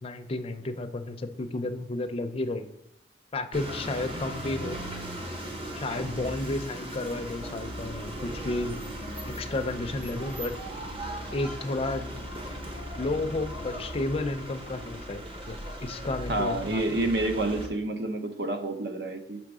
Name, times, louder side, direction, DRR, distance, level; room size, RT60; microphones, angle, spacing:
voice 1, 0.0-2.7 3.3-4.8 5.7-8.8 9.3-10.5 11.3-12.1 13.0-17.1, left 2 dB, 35° left, 8 dB, 0.5 m, -32 dB
sound 1, 3.5-17.7, equal, 35° right, 1.0 m, -38 dB
voice 2, 16.3-19.4, right 2 dB, 65° right, 6 dB, 0.7 m, -29 dB
5.9 x 3.8 x 4.8 m, 0.74 s
head